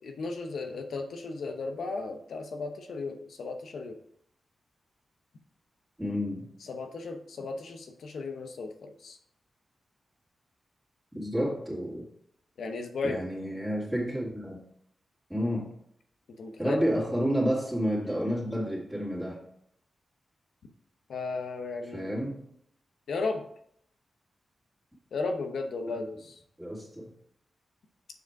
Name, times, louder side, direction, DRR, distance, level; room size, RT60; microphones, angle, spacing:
voice 1, 0.0-4.0 6.6-9.2 12.6-13.2 16.4-16.8 21.1-22.1 23.1-23.4 25.1-26.4, left 3 dB, 85° left, 5 dB, 0.9 m, -35 dB
voice 2, 6.0-6.5 11.1-12.0 13.0-14.6 15.3-15.7 16.6-19.4 21.9-22.4 26.6-27.1, equal, 5° right, -5 dB, 2.5 m, -30 dB
6.7 x 4.9 x 4.7 m, 0.68 s
cardioid pair, 85°, 0 cm